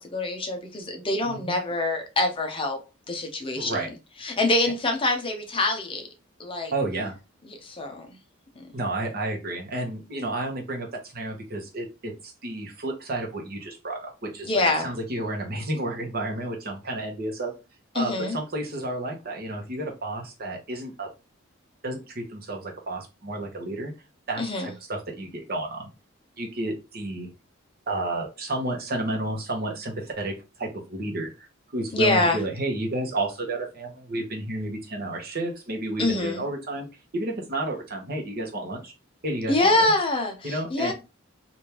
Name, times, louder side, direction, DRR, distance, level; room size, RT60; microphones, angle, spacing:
voice 1, 0.0-2.8 3.1-3.9 4.2-6.1 6.4-6.7 7.5-8.1 14.4-14.9 17.9-18.4 24.4-24.7 31.9-32.4 36.0-36.4 39.5-40.9, left 2 dB, 25° left, 0.7 m, -25 dB
voice 2, 1.2-1.6 3.6-3.9 6.7-7.1 8.7-17.5 17.9-21.1 21.8-23.9 24.3-25.9 26.4-27.3 27.9-36.9 37.1-38.9 39.2-39.9 40.4-40.9, right 2 dB, 50° right, 1.0 m, -31 dB
3.4 x 2.6 x 2.9 m
head